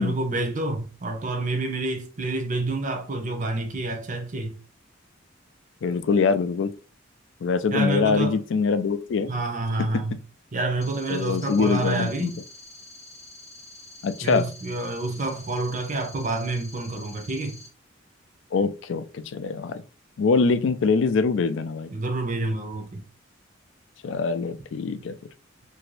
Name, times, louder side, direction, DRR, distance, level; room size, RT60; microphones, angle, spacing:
voice 1, 0.0-4.6 7.7-8.4 9.3-10.2 10.5-12.3 14.2-17.6 21.9-23.0, right 2 dB, 40° right, 0.6 m, -28 dB
voice 2, 5.8-6.7 7.4-9.4 11.1-12.3 14.0-14.5 18.5-19.8 20.2-21.9 24.0-25.1, left 4 dB, 65° left, 0.4 m, -24 dB
sound 1, 10.8-17.7, left 2 dB, 35° left, 0.8 m, -46 dB
2.9 x 2.7 x 3.1 m
head